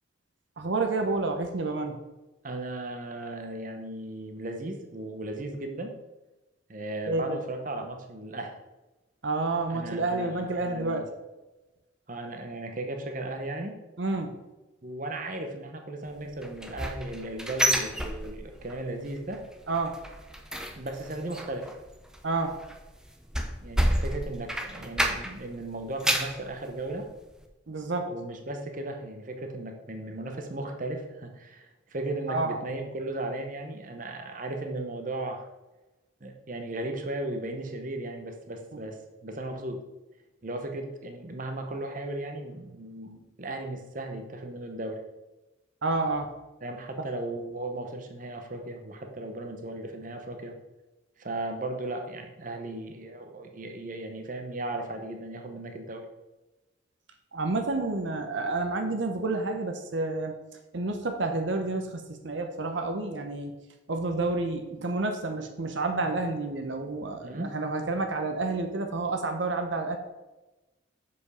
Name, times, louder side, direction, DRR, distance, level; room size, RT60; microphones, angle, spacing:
voice 1, 0.6-2.0 7.1-7.4 9.2-11.1 14.0-14.4 19.7-19.9 22.2-22.6 27.7-28.1 32.3-32.6 45.8-46.3 57.3-60.4 60.7-63.5 63.9-70.0, right 3 dB, 70° right, 5 dB, 0.8 m, -29 dB
voice 2, 2.4-5.9 6.7-8.5 9.7-11.0 12.1-13.7 14.8-19.4 20.8-21.7 23.6-27.1 28.1-35.5 36.2-39.8 40.4-45.0 46.6-50.5 51.2-56.0 67.2-67.5, right 2 dB, 40° right, 4 dB, 0.9 m, -36 dB
sound 1, 16.4-18.8 19.0-19.4 19.7-25.5 25.8-26.4 26.9-27.0 27.4-27.5, right 1 dB, 5° right, 0.5 m, -30 dB
6.9 x 5.2 x 4.9 m, 1.1 s
head